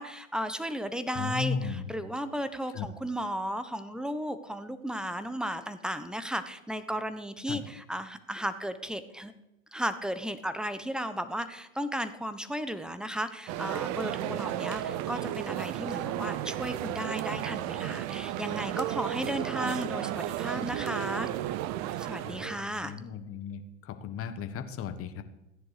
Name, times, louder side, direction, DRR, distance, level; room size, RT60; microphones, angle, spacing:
voice 1, 0.0-9.3 9.7-21.3 22.0-22.9, equal, ahead, 11 dB, 1.1 m, -34 dB
voice 2, 1.1-1.8 2.7-2.9 7.5-7.6 14.3-14.4 22.2-25.2, left 6 dB, 35° left, 9 dB, 1.6 m, -36 dB
sound 1, 13.5-22.7, right 13 dB, 45° right, 0.7 m, -33 dB
15.0 x 10.0 x 5.0 m, 0.92 s
hypercardioid pair, 90°, 38 cm